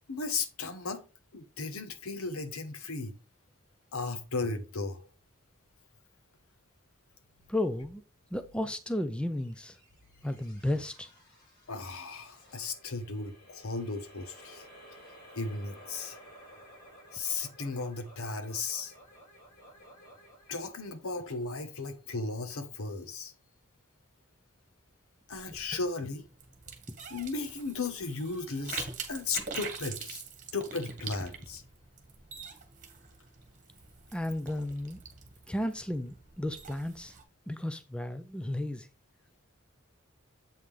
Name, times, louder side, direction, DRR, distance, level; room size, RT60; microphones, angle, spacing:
voice 1, 0.1-1.0 1.3-3.2 3.9-5.1 11.7-14.6 15.3-16.2 17.1-18.9 20.5-23.3 25.3-26.2 27.1-30.2 30.5-31.6, left 3 dB, 85° left, 1.2 m, -35 dB
voice 2, 7.5-8.0 8.3-9.8 10.2-11.1 34.1-35.0 35.5-37.1 37.5-38.9, left 1 dB, 5° left, 0.4 m, -33 dB
sound 1, 9.4-22.0, equal, 45° left, 4.6 m, -55 dB
sound 2, 25.3-37.2, right 5 dB, 35° right, 1.5 m, -44 dB
7.8 x 5.5 x 3.3 m
head